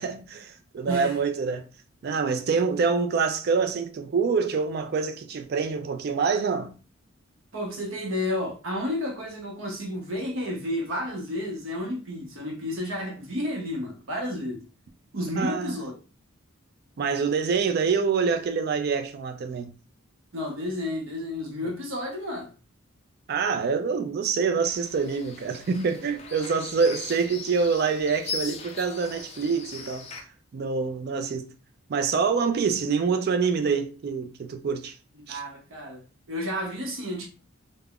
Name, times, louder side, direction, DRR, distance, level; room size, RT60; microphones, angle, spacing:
voice 1, 0.0-1.7 2.0-6.7 15.4-15.7 17.0-19.7 23.3-30.1 30.5-31.5 31.9-34.9 35.3-35.4, right 5 dB, 45° right, 0.3 m, -26 dB
voice 2, 0.8-1.2 7.5-14.6 15.1-15.9 20.3-22.5 35.3-37.3, left 1 dB, 65° right, 0.7 m, -31 dB
sound 1, 24.6-30.2, left 4 dB, 30° left, 0.4 m, -39 dB
3.5 x 2.0 x 2.3 m
head